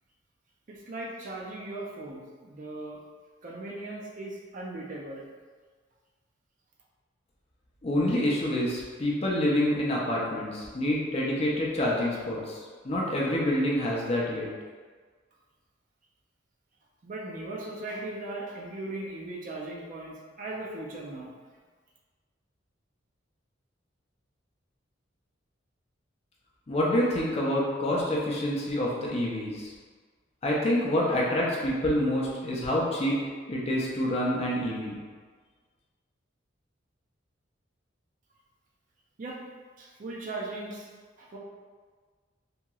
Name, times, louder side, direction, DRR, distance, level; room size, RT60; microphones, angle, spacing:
voice 1, 0.7-3.0 3.4-5.3 17.0-21.3 39.2-39.4 39.8-40.9 41.2-41.4, right 2 dB, 40° right, -3 dB, 0.4 m, -38 dB
voice 2, 7.8-12.6 12.8-14.5 26.7-29.7 30.4-33.2 33.5-35.0, left 1 dB, 30° left, -4 dB, 0.5 m, -27 dB
2.8 x 2.8 x 2.3 m, 1.5 s
head